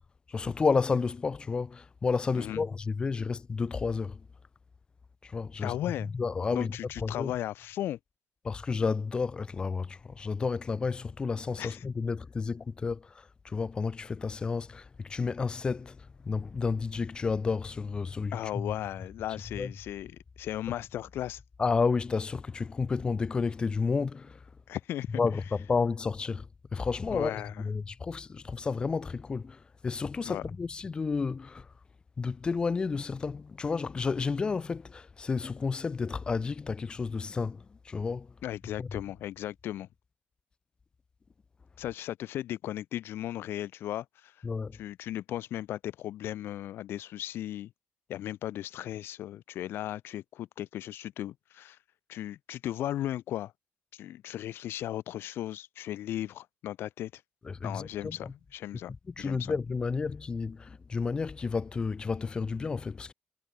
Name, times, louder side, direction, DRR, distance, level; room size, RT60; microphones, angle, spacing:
voice 1, 0.3-4.2 5.2-5.7 6.1-6.7 7.0-7.3 8.4-13.1 13.4-18.7 19.6-19.7 21.6-24.4 25.2-26.4 26.7-31.7 32.2-38.3 38.8-38.9 44.4-44.8 57.4-58.3 59.2-63.1, left 4 dB, 25° left, 1.0 m, -31 dB
voice 2, 5.6-6.1 6.5-8.0 11.6-11.8 18.3-21.4 24.7-25.2 27.1-27.7 30.2-30.4 38.4-39.9 41.8-44.3 44.7-47.7 48.1-51.8 52.1-53.5 53.9-57.2 57.6-58.9 59.2-59.5, left 13 dB, 75° left, 3.3 m, -36 dB
cardioid pair, 165°, 4 cm